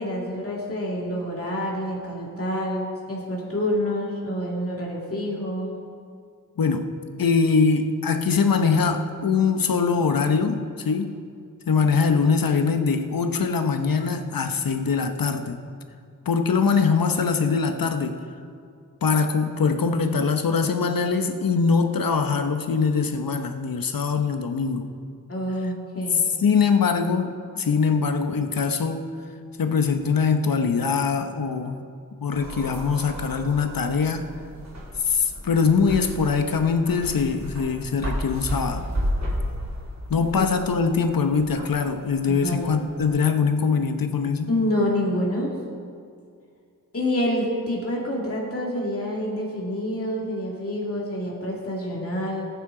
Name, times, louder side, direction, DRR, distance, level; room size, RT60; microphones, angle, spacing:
voice 1, 0.0-5.7 25.3-26.2 40.4-40.5 42.3-42.8 44.5-45.5 46.9-52.5, left 1 dB, 40° left, -4 dB, 2.3 m, -27 dB
voice 2, 6.6-6.9 7.2-11.1 11.7-15.6 16.3-18.2 19.0-24.9 26.4-29.1 29.6-31.8 32.2-34.3 35.1-38.9 40.1-44.5, left 5 dB, 80° left, 7 dB, 0.9 m, -22 dB
sound 1, 32.3-43.1, equal, 55° right, 3.3 m, -33 dB
18.5 x 9.4 x 3.8 m, 2.3 s
wide cardioid pair, 95°, 34 cm